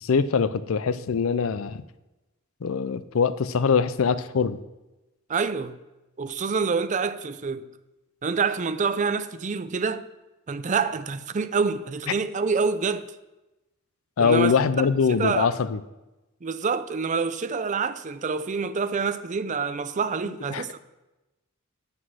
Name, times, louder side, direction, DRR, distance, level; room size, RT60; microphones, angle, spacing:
voice 1, 0.0-1.8 2.6-4.6 14.2-15.8 20.5-20.6, left 6 dB, 80° left, 0.5 m, -23 dB
voice 2, 5.3-5.8 6.2-7.7 8.2-10.1 10.5-13.1 14.2-14.5 15.1-15.5 16.4-20.8, right 5 dB, 35° right, 0.5 m, -27 dB
9.6 x 6.0 x 6.3 m
head